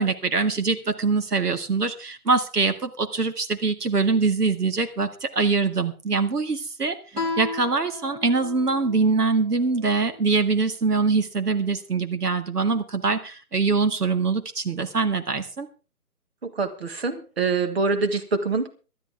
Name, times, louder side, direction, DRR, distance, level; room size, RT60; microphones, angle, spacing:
voice 1, 0.0-7.0 7.4-15.7, right 4 dB, 80° right, 8 dB, 2.1 m, -23 dB
Guitar, 7.1-10.4, left 3 dB, 10° right, 2.2 m, -34 dB
voice 2, 16.4-18.7, right 4 dB, 40° right, 8 dB, 1.6 m, -25 dB
19.0 x 12.5 x 3.5 m, 0.32 s
hypercardioid pair, 170°, 46 cm